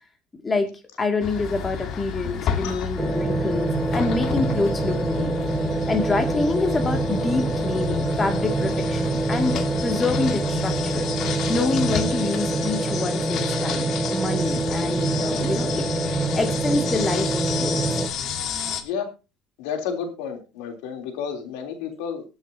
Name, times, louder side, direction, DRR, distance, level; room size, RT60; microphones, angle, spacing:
voice 1, 0.4-0.7 1.0-5.3 5.9-11.1 11.5-18.0, left 3 dB, 20° left, 6 dB, 2.3 m, -27 dB
sound 1, 1.2-18.8, left 8 dB, 50° left, 1.8 m, -31 dB
sound 2, 3.0-18.1, right 2 dB, 15° right, 1.7 m, -25 dB
voice 2, 19.6-22.2, left 7 dB, 85° left, 5 dB, 3.3 m, -31 dB
21.5 x 8.1 x 2.8 m, 0.30 s
cardioid pair, 120°, 0 cm